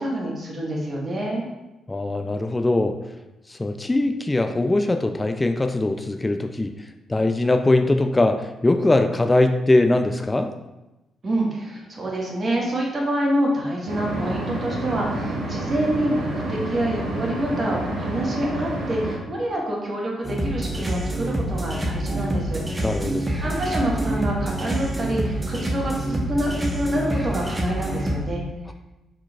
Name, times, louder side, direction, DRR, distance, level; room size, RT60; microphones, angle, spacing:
voice 1, 0.0-1.4 11.2-22.6 23.4-28.4, right 1 dB, 45° right, -2 dB, 1.4 m, -26 dB
voice 2, 1.9-3.0 3.5-10.5 22.8-23.3, left 2 dB, 25° left, 6 dB, 0.3 m, -21 dB
sound 1, 13.9-19.2, right 1 dB, 75° right, 1.0 m, -29 dB
sound 2, 20.2-28.2, right 1 dB, 25° right, 0.9 m, -27 dB
4.6 x 3.8 x 2.3 m, 1.0 s
hypercardioid pair, 45°, 0 cm